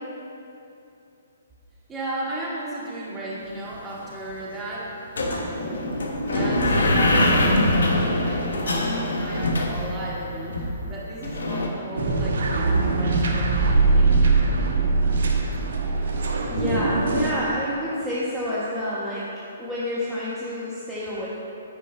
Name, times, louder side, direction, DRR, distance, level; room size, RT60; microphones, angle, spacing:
voice 1, 1.9-5.6 6.3-14.2, right 1 dB, 15° right, -6 dB, 1.8 m, -35 dB
sound 1, 3.7-3.8 4.0-4.4 5.2-11.7, left 1 dB, 75° left, 1.1 m, -23 dB
sound 2, 12.0-17.3, right 3 dB, 65° right, 1.0 m, -21 dB
voice 2, 16.1-21.3, left 1 dB, ahead, -11 dB, 1.2 m, -29 dB
9.6 x 5.2 x 4.6 m, 2.7 s
hypercardioid pair, 135°, 0 cm